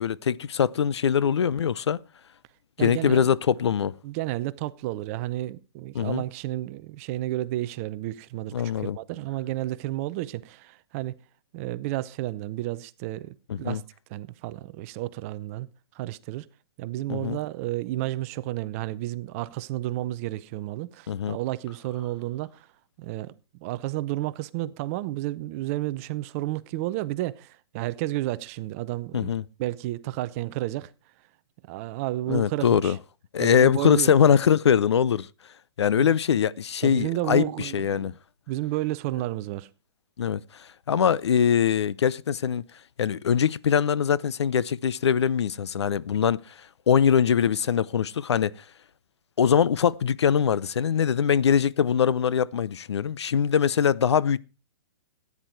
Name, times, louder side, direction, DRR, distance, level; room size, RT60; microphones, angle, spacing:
voice 1, 0.0-2.0 2.8-3.9 5.9-6.2 8.5-9.0 13.5-13.8 17.1-17.4 21.1-21.4 29.1-29.4 32.3-33.0 33.3-35.3 35.8-38.1 40.2-42.6 43.0-48.5 49.4-54.4, left 8 dB, 80° left, 0.7 m, -22 dB
voice 2, 2.8-3.3 4.0-11.2 11.5-13.8 14.1-15.7 15.9-16.5 16.8-22.7 23.0-29.3 29.6-30.9 31.7-33.0 33.4-34.1 36.0-36.1 36.8-38.2 38.5-39.7, right 16 dB, 30° right, 0.7 m, -31 dB
14.5 x 9.8 x 4.6 m
hypercardioid pair, 145°, 14 cm